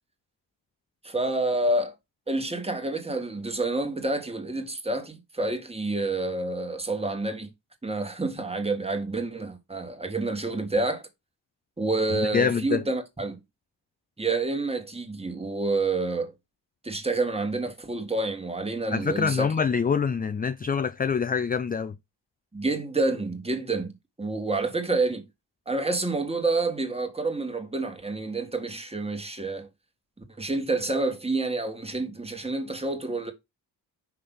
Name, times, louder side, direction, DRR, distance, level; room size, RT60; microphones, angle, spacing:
voice 1, 1.0-1.9 2.3-7.5 7.8-11.0 11.8-13.4 14.2-16.3 16.8-19.5 22.5-25.3 25.7-29.7 30.4-33.3, right 2 dB, 15° right, 1.6 m, -28 dB
voice 2, 12.1-12.8 18.9-22.0, left 6 dB, 20° left, 0.3 m, -25 dB
5.9 x 3.3 x 5.4 m
cardioid pair, 75°, 45 cm